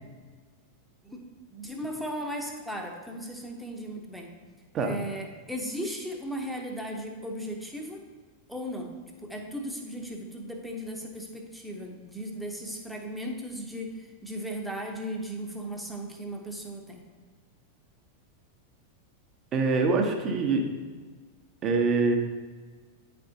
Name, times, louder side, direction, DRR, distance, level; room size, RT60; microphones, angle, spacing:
voice 1, 1.5-4.3 4.8-8.0 8.5-17.0, equal, ahead, 1 dB, 0.9 m, -36 dB
voice 2, 19.5-20.6 21.6-22.2, right 4 dB, 30° right, 3 dB, 0.9 m, -24 dB
9.3 x 4.4 x 2.7 m, 1.5 s
figure-of-eight pair, 90°, 0 cm